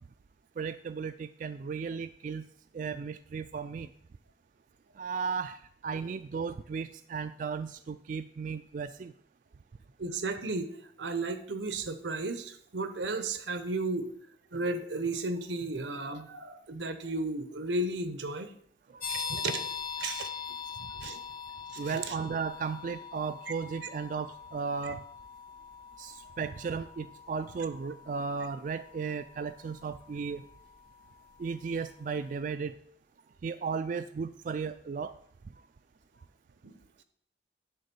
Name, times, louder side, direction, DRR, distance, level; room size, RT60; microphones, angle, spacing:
voice 1, 0.6-2.5 2.7-3.9 5.0-5.6 5.8-9.1 18.9-19.4 21.8-25.0 26.0-30.4 31.4-32.7 33.4-35.1, right 5 dB, 45° right, 10 dB, 0.3 m, -35 dB
voice 2, 10.0-10.7 11.0-14.1 14.5-18.5 19.1-19.7 20.0-20.3 21.0-21.2 21.7-22.2 24.9-25.0 36.6-36.8, right 2 dB, 90° right, 10 dB, 0.9 m, -34 dB
sound 1, 19.0-31.5, left 6 dB, 55° left, 1.7 m, -42 dB
10.5 x 3.7 x 6.8 m, 0.66 s
head